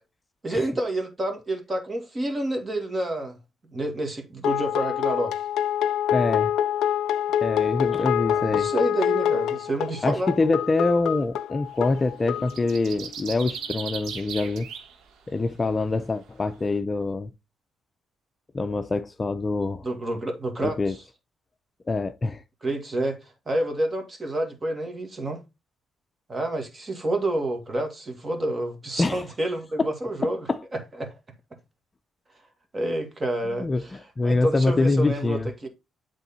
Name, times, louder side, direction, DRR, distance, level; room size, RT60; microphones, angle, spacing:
voice 1, 0.4-3.4 3.7-5.3 8.3-10.5 19.8-21.0 22.6-25.4 26.3-30.5 30.7-31.1 32.7-35.7, right 1 dB, 30° right, 2.0 m, -29 dB
sound 1, 4.4-13.0, left 10 dB, 80° left, 0.3 m, -26 dB
voice 2, 6.1-6.5 7.4-8.7 10.0-14.7 15.3-17.3 18.5-19.8 20.6-20.9 21.9-22.4 29.0-29.2 29.8-29.9 30.2-30.6 33.6-35.5, left 3 dB, 25° left, 0.5 m, -25 dB
sound 2, 11.8-12.0 12.2-15.0 15.4-15.5, right 7 dB, 75° right, 1.1 m, -37 dB
8.1 x 3.7 x 4.2 m
cardioid pair, 90°, 0 cm